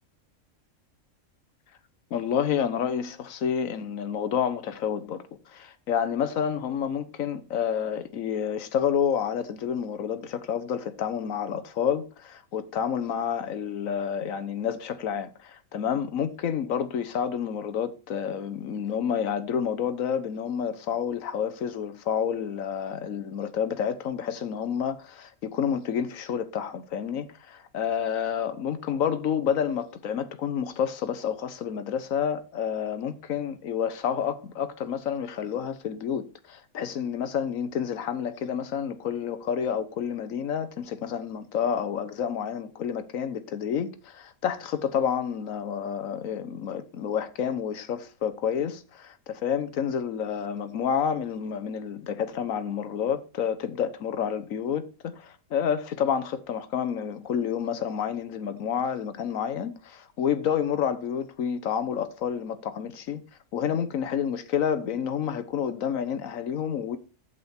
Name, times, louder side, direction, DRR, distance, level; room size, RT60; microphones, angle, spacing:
voice 1, 2.1-63.2 63.5-67.0, left 8 dB, 70° left, 1.3 m, -29 dB
8.8 x 8.1 x 4.4 m
omnidirectional pair, 1.5 m